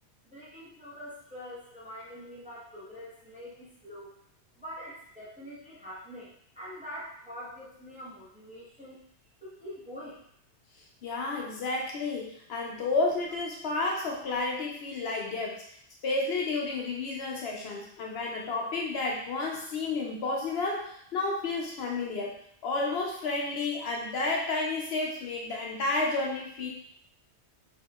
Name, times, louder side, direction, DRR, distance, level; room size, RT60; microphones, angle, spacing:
voice 1, 0.2-4.1 4.6-9.0 9.4-10.2 12.7-12.8, equal, 10° right, -9 dB, 0.9 m, -44 dB
voice 2, 11.0-15.6 16.0-22.3 22.6-26.7, left 3 dB, 70° left, -1 dB, 0.8 m, -31 dB
3.5 x 2.8 x 2.3 m, 0.68 s
omnidirectional pair, 1.1 m